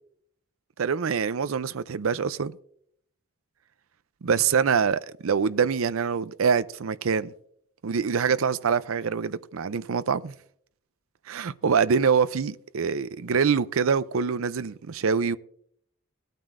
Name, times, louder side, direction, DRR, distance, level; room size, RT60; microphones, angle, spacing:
voice 1, 0.8-2.6 4.2-7.3 7.8-10.3 11.3-15.4, right 6 dB, 75° right, 0.5 m, -25 dB
18.5 x 9.1 x 2.5 m
head